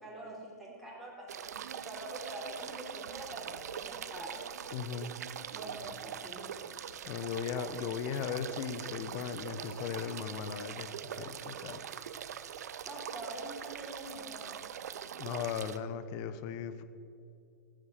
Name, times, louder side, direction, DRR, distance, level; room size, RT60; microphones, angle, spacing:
voice 1, 0.0-4.5 5.5-6.5 12.8-14.6, right 1 dB, ahead, -4 dB, 3.5 m, -45 dB
sound 1, 1.3-15.8, right 9 dB, 75° right, 0.7 m, -43 dB
voice 2, 4.7-5.2 7.1-10.9 11.2-11.8 15.2-16.8, left 8 dB, 45° left, 12 dB, 1.0 m, -37 dB
14.5 x 9.1 x 6.3 m, 2.5 s
hypercardioid pair, 105°, 9 cm